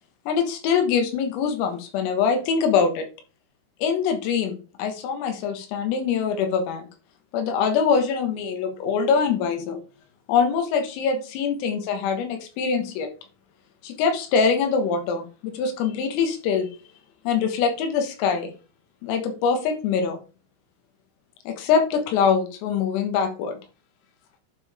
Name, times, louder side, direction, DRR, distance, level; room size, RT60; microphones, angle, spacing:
voice 1, 0.3-3.1 3.8-6.9 7.3-9.8 10.3-13.1 13.8-16.7 17.3-18.5 19.0-20.2 21.5-23.6, left 6 dB, 85° left, 5 dB, 4.1 m, -23 dB
11.5 x 5.6 x 3.6 m, 0.34 s
omnidirectional pair, 5.8 m